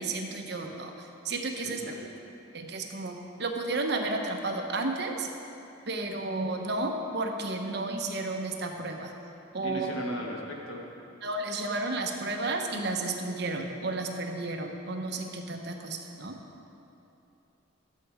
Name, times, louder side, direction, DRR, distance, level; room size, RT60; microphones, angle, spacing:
voice 1, 0.0-2.1 2.5-5.3 5.9-9.1 9.5-9.9 11.2-16.4, right 2 dB, 55° right, 3 dB, 0.9 m, -32 dB
voice 2, 1.6-2.0 9.6-10.8, equal, 80° left, -1 dB, 1.6 m, -37 dB
13.0 x 7.6 x 4.9 m, 2.9 s
head